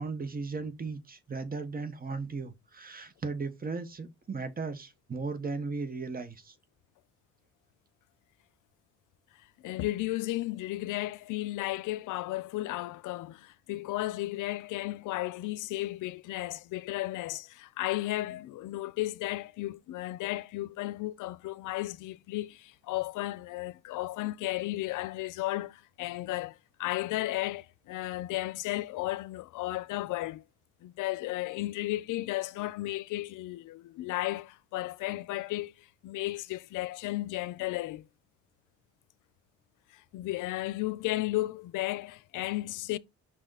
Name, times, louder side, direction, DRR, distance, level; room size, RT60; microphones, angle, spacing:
voice 1, 0.0-6.5, right 4 dB, 30° right, 1.3 m, -36 dB
voice 2, 9.6-30.4 30.8-38.0 39.9-43.0, left 17 dB, 85° left, 0.6 m, -34 dB
6.1 x 3.9 x 4.0 m
cardioid pair, 90°, 30 cm